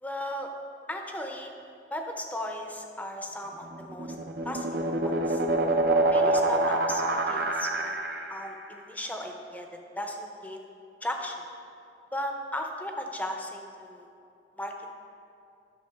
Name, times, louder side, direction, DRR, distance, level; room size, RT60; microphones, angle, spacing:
voice 1, 0.0-0.5 0.9-1.5 1.9-4.2 4.4-5.4 6.1-8.0 8.3-10.7 11.0-11.4 12.1-14.1 14.6-14.9, left 1 dB, 10° left, 3 dB, 0.6 m, -36 dB
sound 1, 3.7-8.5, right 2 dB, 60° right, 0.6 m, -26 dB
11.5 x 6.4 x 3.5 m, 2.5 s
head